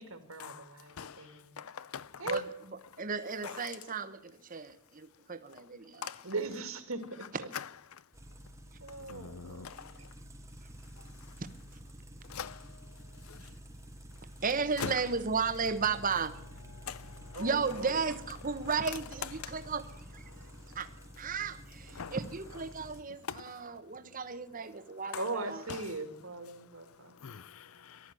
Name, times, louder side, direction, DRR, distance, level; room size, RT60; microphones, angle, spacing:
voice 1, 0.0-1.7 2.2-2.4 6.2-7.5 8.8-10.1 17.3-18.0 25.1-27.1, right 3 dB, 80° right, 2.5 m, -39 dB
voice 2, 1.6-2.1 3.4-3.5 6.0-6.2 9.1-9.9 12.3-12.6 13.3-13.4 14.8-14.9 16.8-17.4 19.4-19.5 22.0-22.1 23.3-23.4 27.2-28.0, left 6 dB, 90° left, 0.6 m, -42 dB
voice 3, 3.0-6.1 11.4-11.5 14.4-16.4 17.4-19.9 20.1-20.2 20.7-20.9 21.2-25.6, right 5 dB, 40° right, 1.0 m, -34 dB
sound 1, 8.1-23.0, equal, 15° right, 1.1 m, -50 dB
14.5 x 12.5 x 7.7 m
head